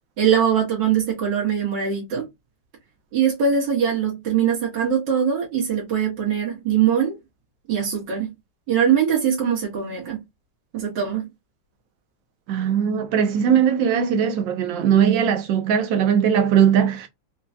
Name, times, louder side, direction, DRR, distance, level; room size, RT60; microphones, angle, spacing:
voice 1, 0.2-2.3 3.1-7.2 7.7-8.3 8.7-10.2 10.7-11.3, right 8 dB, 75° right, 2.0 m, -22 dB
voice 2, 12.5-17.1, right 8 dB, 90° right, 1.5 m, -19 dB
4.6 x 2.2 x 2.7 m
omnidirectional pair, 2.0 m